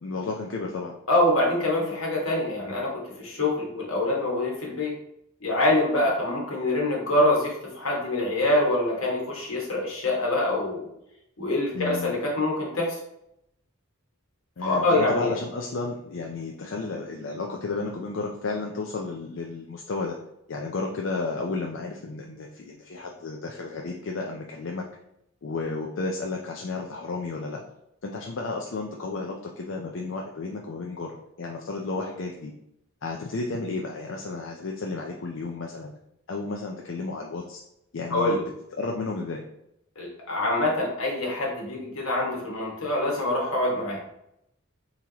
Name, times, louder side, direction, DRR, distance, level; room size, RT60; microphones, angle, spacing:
voice 1, 0.0-1.0 11.7-12.1 14.6-20.2 20.5-24.8 25.4-27.6 28.0-32.5 33.0-35.9 36.3-37.6 37.9-38.4 38.8-39.4, left 3 dB, 60° left, 0 dB, 0.5 m, -32 dB
voice 2, 1.1-4.9 5.4-10.9 11.4-12.9 14.6-15.4 38.1-38.4 39.9-44.0, left 1 dB, 80° left, -2 dB, 1.5 m, -25 dB
4.4 x 3.9 x 2.8 m, 0.79 s
head